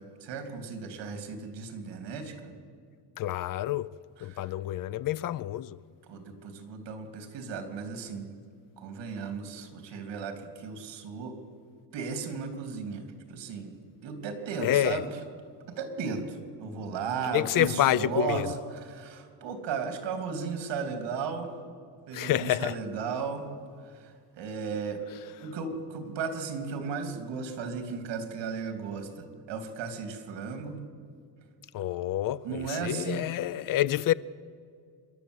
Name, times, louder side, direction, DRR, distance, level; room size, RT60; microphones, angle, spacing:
voice 1, 0.0-2.5 4.3-4.5 6.1-8.3 8.8-11.3 11.9-13.8 14.0-15.1 15.7-18.4 18.7-21.5 22.1-23.5 23.8-25.0 25.4-30.8 32.4-33.2, right 5 dB, 70° right, 3.1 m, -35 dB
voice 2, 3.2-3.9 4.2-5.8 14.6-15.0 17.3-18.5 22.1-22.8 31.7-34.1, left 13 dB, 50° left, 0.5 m, -28 dB
27.0 x 12.0 x 8.2 m
cardioid pair, 160°, 44 cm